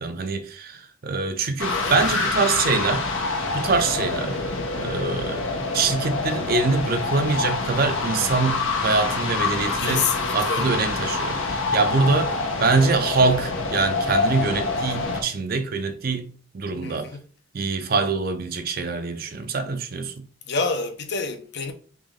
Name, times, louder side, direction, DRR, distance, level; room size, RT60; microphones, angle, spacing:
voice 1, 0.0-3.1 3.5-4.4 4.8-5.5 5.7-10.1 10.3-17.2 17.5-20.2, right 4 dB, 45° right, 0.5 m, -24 dB
sound 1, 1.6-15.2, left 3 dB, 85° left, 0.9 m, -26 dB
voice 2, 1.6-2.3 9.8-10.7 16.8-17.2 20.5-21.7, left 4 dB, 55° left, 0.6 m, -28 dB
3.6 x 3.0 x 3.6 m
head